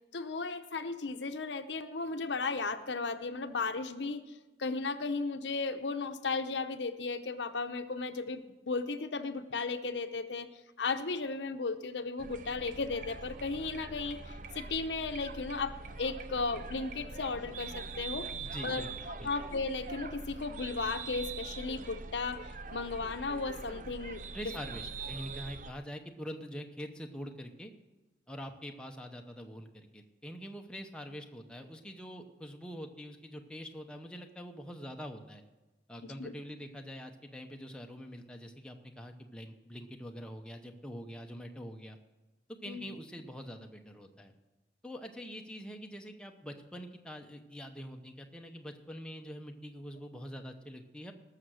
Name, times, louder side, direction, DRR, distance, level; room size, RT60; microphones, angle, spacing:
voice 1, 0.1-4.2 4.6-10.5 10.8-18.3 18.6-24.5 36.0-36.3 42.7-42.9, left 4 dB, 85° left, 8 dB, 0.8 m, -35 dB
sound 1, 12.2-25.7, right 4 dB, 45° right, 0.6 m, -43 dB
voice 2, 18.4-19.3 24.3-27.7 28.3-35.4 35.9-42.0 42.6-44.3 44.8-51.1, equal, 5° left, 3 dB, 0.8 m, -45 dB
19.0 x 6.6 x 6.4 m, 1.1 s
head